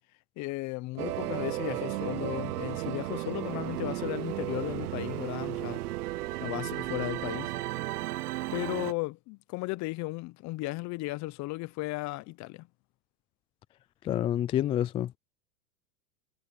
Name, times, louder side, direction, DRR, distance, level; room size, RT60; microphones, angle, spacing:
voice 1, 0.4-5.8 6.4-7.5 8.5-12.7, left 21 dB, 40° left, 1.0 m, -35 dB
sound 1, 1.0-8.9, right 17 dB, 80° right, 0.6 m, -34 dB
voice 2, 14.0-15.2, left 11 dB, 15° left, 0.3 m, -28 dB
hypercardioid pair, 120°, 46 cm